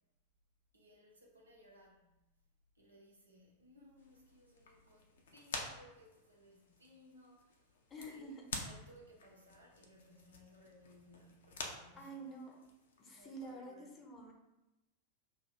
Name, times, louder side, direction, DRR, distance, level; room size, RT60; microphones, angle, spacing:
voice 1, 0.7-2.1 2.7-7.7 8.1-12.1 13.0-14.0, equal, 80° right, -2 dB, 0.8 m, -62 dB
sound 1, 4.0-13.6, left 3 dB, 60° left, 0.5 m, -50 dB
voice 2, 7.9-8.4 12.0-12.6 13.0-14.3, right 1 dB, 25° left, 1 dB, 0.7 m, -48 dB
2.6 x 2.5 x 4.2 m, 0.97 s
figure-of-eight pair, 90°, 0 cm